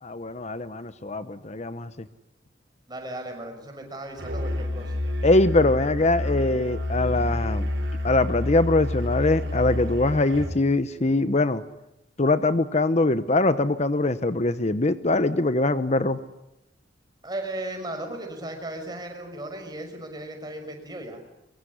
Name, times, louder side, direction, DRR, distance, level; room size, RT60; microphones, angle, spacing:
voice 1, 0.0-1.9 5.2-7.7 8.0-11.6 12.2-16.2, left 2 dB, 40° left, 12 dB, 0.9 m, -22 dB
voice 2, 2.9-4.9 17.2-21.2, right 1 dB, 20° right, 4 dB, 6.3 m, -36 dB
Musical instrument, 4.2-10.6, left 1 dB, 75° right, 5.3 m, -29 dB
24.0 x 23.0 x 9.8 m, 0.89 s
head